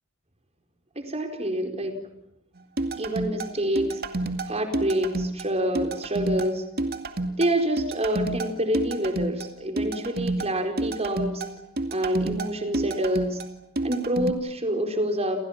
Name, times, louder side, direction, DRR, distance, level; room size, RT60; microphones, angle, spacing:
voice 1, 1.0-2.0 2.9-4.0 4.5-6.6 7.4-11.4 11.9-13.4 13.8-15.4, right 1 dB, 30° right, 5 dB, 4.6 m, -27 dB
sound 1, 2.8-14.3, right 2 dB, 50° right, 2.3 m, -30 dB
29.5 x 28.5 x 6.0 m, 0.80 s
head